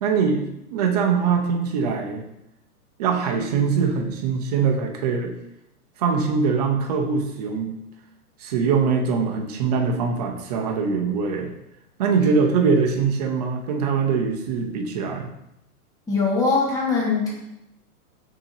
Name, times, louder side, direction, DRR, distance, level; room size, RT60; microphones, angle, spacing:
voice 1, 0.0-2.3 3.0-5.3 6.0-7.8 8.4-11.5 12.0-15.3, right 5 dB, 30° right, 2 dB, 0.4 m, -22 dB
voice 2, 16.1-17.3, left 4 dB, 10° left, -4 dB, 0.8 m, -21 dB
6.9 x 2.8 x 2.7 m, 0.86 s
hypercardioid pair, 140°, 46 cm